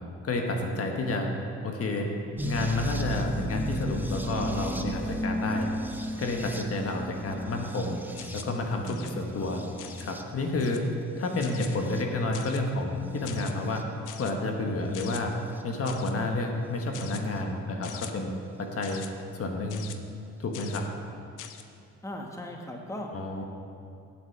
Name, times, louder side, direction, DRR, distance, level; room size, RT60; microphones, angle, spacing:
voice 1, 0.2-1.3 1.6-2.1 2.4-5.7 6.2-8.0 8.3-9.6 10.0-10.8 11.2-13.8 14.1-15.3 15.6-18.3 18.6-19.0 19.3-19.8 20.4-20.8 23.1-23.5, left 2 dB, 50° left, 2 dB, 1.4 m, -30 dB
sound 1, 2.4-10.5 11.2-12.0 13.2-13.8 15.6-15.7 17.4-17.5, equal, 5° right, 0.7 m, -35 dB
sound 2, 8.2-8.6 8.8-9.1 9.8-10.1 10.6-10.9 11.4-11.8 12.3-12.7 13.2-13.5 14.1-14.3 14.9-15.2 15.8-16.1 16.9-17.2 17.8-18.1 18.8-19.1 19.7-20.0 20.5-20.9 21.4-21.6, left 10 dB, 90° left, 0.7 m, -43 dB
voice 2, 8.9-9.5 22.0-23.1, left 1 dB, 10° left, 1 dB, 1.1 m, -38 dB
8.6 x 8.1 x 6.6 m, 2.6 s
cardioid pair, 90°, 30 cm